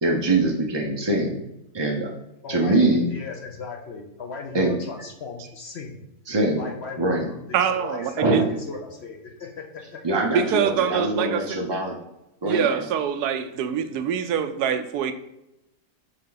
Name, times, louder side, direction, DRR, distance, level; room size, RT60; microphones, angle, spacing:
voice 1, 0.0-1.4 1.7-2.1 2.5-3.1 4.5-4.8 6.3-6.6 7.0-7.3 8.2-8.6 10.0-12.0 12.4-12.8, right 2 dB, 40° right, 0 dB, 0.3 m, -23 dB
voice 2, 2.4-6.1 6.5-10.0, left 4 dB, 55° left, 2 dB, 0.8 m, -37 dB
voice 3, 7.5-8.4 10.3-11.6 12.4-15.1, right 8 dB, 80° right, 9 dB, 1.1 m, -24 dB
6.5 x 4.4 x 3.9 m, 0.89 s
omnidirectional pair, 1.7 m